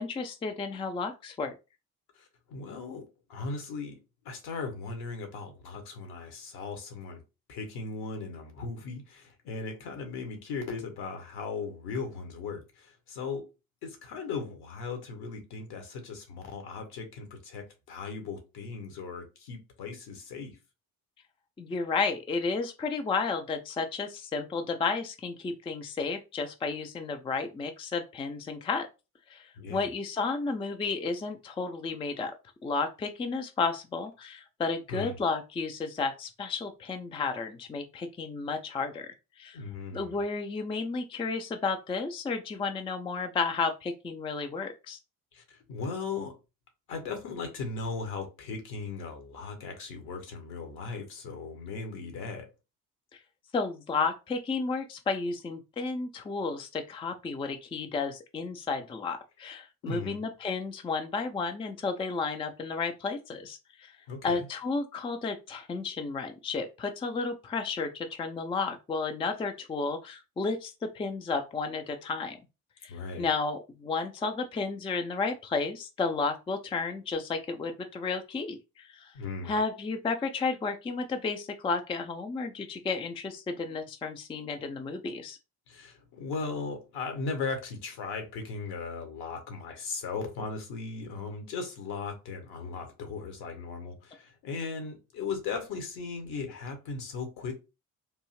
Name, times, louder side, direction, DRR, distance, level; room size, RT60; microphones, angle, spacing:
voice 1, 0.0-1.5 21.6-28.9 29.3-32.3 32.6-39.1 39.4-39.6 39.9-45.0 53.1-53.2 53.5-64.0 64.2-72.4 72.8-79.1 79.4-85.4, left 4 dB, 15° left, 0.4 m, -32 dB
voice 2, 2.1-4.0 4.2-7.2 7.5-13.5 13.8-20.6 29.6-29.9 34.9-35.2 39.5-40.2 45.3-46.4 46.9-52.5 59.8-60.2 64.1-64.5 72.9-73.3 79.1-79.5 85.7-97.5, left 4 dB, 60° left, 1.2 m, -37 dB
3.5 x 2.7 x 3.0 m
figure-of-eight pair, 45°, 45 cm